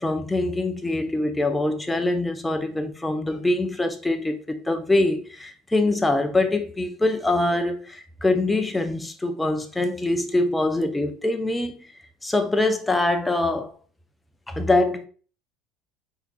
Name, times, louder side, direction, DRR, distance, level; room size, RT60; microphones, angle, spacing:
voice 1, 0.0-11.9 12.2-13.7 14.5-15.1, left 2 dB, 10° left, 0.6 m, -24 dB
4.5 x 3.8 x 2.3 m
figure-of-eight pair, 65°, 0 cm